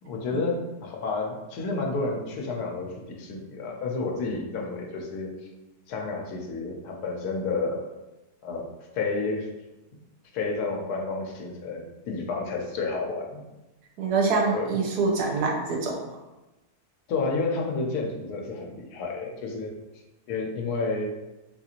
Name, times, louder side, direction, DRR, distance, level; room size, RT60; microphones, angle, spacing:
voice 1, 0.0-5.5 5.9-7.8 8.4-8.7 8.9-9.5 10.3-13.4 14.5-14.7 17.1-19.7 20.3-21.1, left 3 dB, 85° left, 1 dB, 1.2 m, -30 dB
voice 2, 14.0-16.0, right 4 dB, 85° right, -1 dB, 1.3 m, -25 dB
3.9 x 2.4 x 2.8 m, 1.0 s
omnidirectional pair, 1.6 m